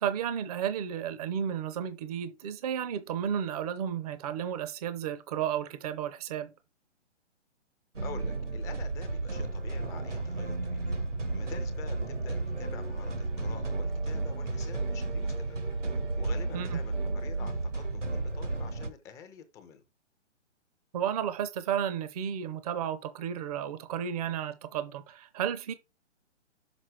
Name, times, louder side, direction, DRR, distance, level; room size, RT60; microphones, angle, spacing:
voice 1, 0.0-6.5 16.5-16.8 20.9-25.7, right 9 dB, 35° right, 0.7 m, -33 dB
voice 2, 8.0-11.0 11.3-19.8, left 7 dB, 10° left, 0.6 m, -48 dB
sound 1, 8.0-18.9, right 3 dB, 85° right, 2.0 m, -33 dB
6.1 x 5.9 x 4.7 m
figure-of-eight pair, 135°, 35 cm